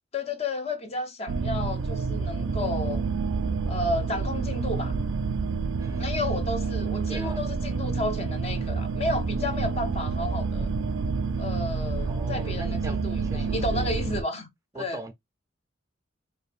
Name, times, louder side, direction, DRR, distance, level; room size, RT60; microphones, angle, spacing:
voice 1, 0.1-3.0 3.7-5.0 6.0-10.7 11.4-14.5 14.8-15.0, left 2 dB, 30° left, 0.6 m, -32 dB
sound 1, 1.3-14.2, right 4 dB, 80° right, 0.4 m, -28 dB
voice 2, 5.8-6.4 7.1-7.4 12.1-13.9 14.7-15.1, right 2 dB, 15° right, 0.4 m, -41 dB
5.1 x 2.4 x 2.4 m
head